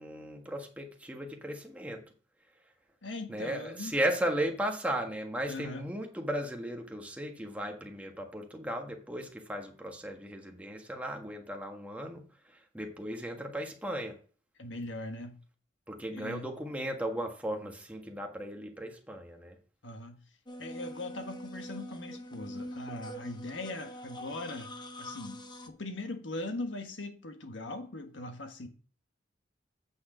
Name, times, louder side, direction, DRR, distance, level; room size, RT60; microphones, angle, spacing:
voice 1, 0.0-2.1 3.3-14.2 15.9-19.6, right 1 dB, 10° right, 1.5 m, -36 dB
voice 2, 3.0-4.0 5.5-5.8 14.6-15.4 16.1-16.4 19.8-20.2 20.6-28.7, left 2 dB, 80° left, 1.4 m, -40 dB
sound 1, 20.5-25.7, left 1 dB, 25° left, 0.9 m, -43 dB
8.5 x 6.4 x 4.9 m
head